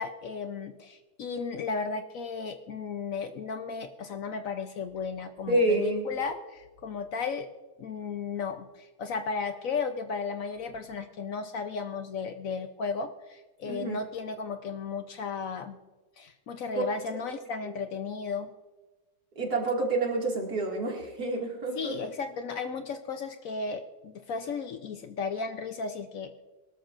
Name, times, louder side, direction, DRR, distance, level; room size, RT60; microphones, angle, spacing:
voice 1, 0.0-7.5 7.8-15.8 16.2-18.5 21.8-26.3, left 5 dB, 60° left, 8 dB, 1.0 m, -35 dB
voice 2, 5.5-6.1 13.6-14.0 17.6-17.7 19.4-22.0, right 2 dB, 65° right, 0 dB, 2.8 m, -28 dB
22.0 x 13.0 x 2.5 m, 1.2 s
omnidirectional pair, 1.8 m